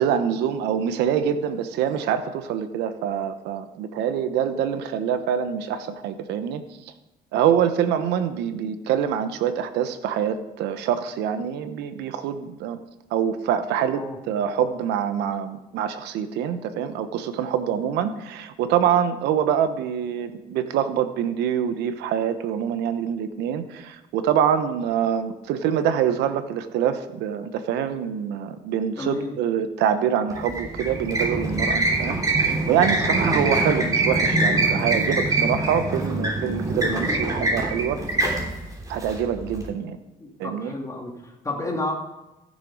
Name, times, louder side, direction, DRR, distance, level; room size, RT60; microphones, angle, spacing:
voice 1, 0.0-6.6 7.3-12.8 13.1-38.0 38.9-40.0 40.4-40.7, right 8 dB, 85° right, 10 dB, 1.0 m, -25 dB
voice 2, 29.0-29.4 40.2-41.9, left 2 dB, 20° left, -1 dB, 2.7 m, -31 dB
sound 1, 30.3-39.6, right 2 dB, 20° right, 3.2 m, -24 dB
15.0 x 6.8 x 4.9 m, 1.0 s
cardioid pair, 110°, 17 cm